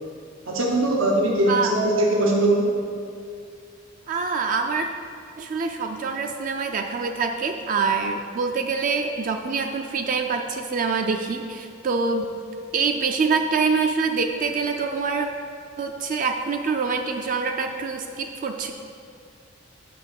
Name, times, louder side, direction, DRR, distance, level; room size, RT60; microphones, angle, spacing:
voice 1, 0.5-2.8, right 1 dB, 85° right, -1 dB, 0.8 m, -21 dB
voice 2, 4.1-4.9 5.4-12.3 12.7-15.3 15.8-18.7, right 4 dB, 40° right, 4 dB, 0.4 m, -25 dB
6.0 x 5.1 x 6.5 m, 2.4 s
head